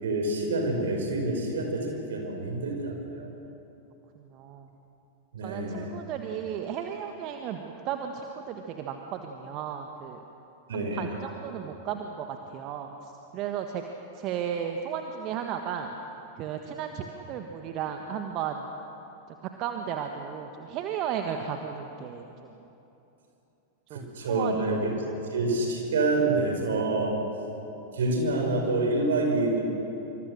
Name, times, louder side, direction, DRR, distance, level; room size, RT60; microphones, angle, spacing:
voice 1, 0.0-3.3 5.3-5.9 10.7-11.1 23.9-24.9 25.3-27.2 27.9-29.6, right 2 dB, 65° right, 2 dB, 5.6 m, -27 dB
voice 2, 4.2-4.7 5.4-10.2 10.7-13.8 14.1-15.9 16.4-18.7 19.4-22.5 23.9-24.6 25.0-25.1, right 8 dB, 40° right, 4 dB, 1.5 m, -34 dB
26.5 x 25.5 x 6.6 m, 3.0 s
figure-of-eight pair, 90°, 0 cm